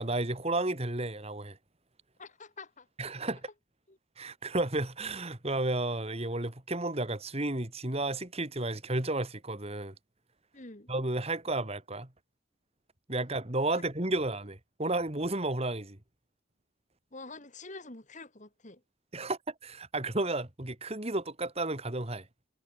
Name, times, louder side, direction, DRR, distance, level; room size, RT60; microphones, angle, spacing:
voice 1, 0.0-1.6 3.0-3.4 4.2-9.9 10.9-12.1 13.1-16.0 19.1-22.3, right 2 dB, 30° right, 2.2 m, -32 dB
voice 2, 2.2-2.9 3.9-4.0 10.5-10.9 13.7-13.9 17.1-18.8, left 3 dB, 35° left, 2.5 m, -47 dB
head